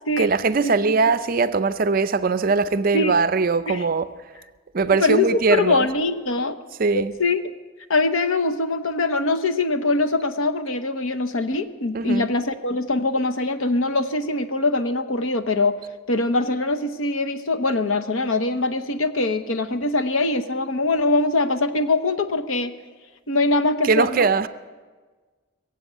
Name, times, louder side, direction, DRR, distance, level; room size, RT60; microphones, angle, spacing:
voice 1, 0.2-4.1 4.7-5.9 6.8-7.1 11.9-12.3 23.8-24.5, right 4 dB, 40° right, 0.4 m, -21 dB
voice 2, 5.0-6.6 6.9-7.5 7.9-15.8 16.1-22.7 23.3-24.3, left 2 dB, 75° left, 0.9 m, -23 dB
21.5 x 7.9 x 8.2 m
head